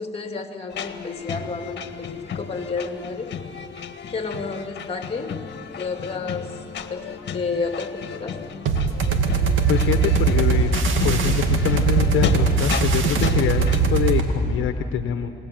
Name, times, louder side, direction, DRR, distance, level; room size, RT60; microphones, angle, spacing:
voice 1, 0.0-3.3 4.1-5.4 5.8-6.6 6.9-8.4, left 4 dB, 30° left, 4 dB, 2.9 m, -31 dB
sound 1, 0.7-13.8, left 7 dB, 60° left, 1.7 m, -33 dB
sound 2, 8.6-14.3, right 5 dB, 80° right, 2.4 m, -20 dB
voice 2, 9.7-10.7 11.0-13.6 13.9-15.3, left 10 dB, 80° left, 7 dB, 1.2 m, -24 dB
28.5 x 19.5 x 8.0 m, 2.8 s
cardioid pair, 90°, 20 cm